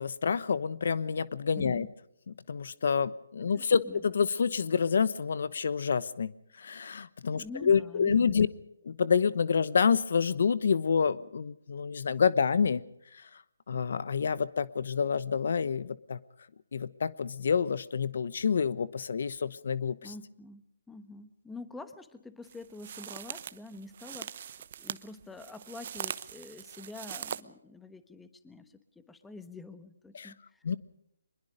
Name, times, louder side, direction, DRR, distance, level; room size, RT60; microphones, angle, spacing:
voice 1, 0.0-1.9 2.5-6.3 6.6-8.5 8.8-12.8 13.2-13.3 13.7-16.2 16.7-20.1 30.1-30.3 30.6-30.8, left 6 dB, 60° left, 17 dB, 1.0 m, -28 dB
voice 2, 1.5-1.9 3.4-4.0 7.3-8.4 20.0-20.6 20.9-30.6, left 3 dB, 5° left, 11 dB, 1.2 m, -46 dB
sound 1, 22.4-27.4, right 9 dB, 45° right, 0.9 m, -41 dB
24.0 x 21.5 x 5.2 m, 0.74 s
figure-of-eight pair, 150°, 0 cm